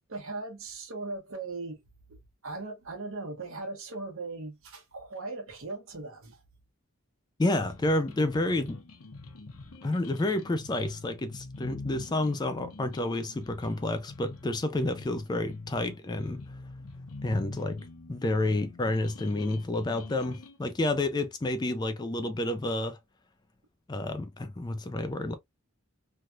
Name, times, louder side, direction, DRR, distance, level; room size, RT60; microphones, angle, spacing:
voice 1, 0.1-1.8 2.4-6.4, right 3 dB, 70° right, 1.1 m, -38 dB
voice 2, 7.4-8.8 9.8-16.6 17.2-23.0 23.9-25.4, left 2 dB, 20° left, 0.3 m, -30 dB
sound 1, 7.6-20.6, left 3 dB, 85° left, 0.8 m, -45 dB
3.2 x 2.3 x 2.6 m
head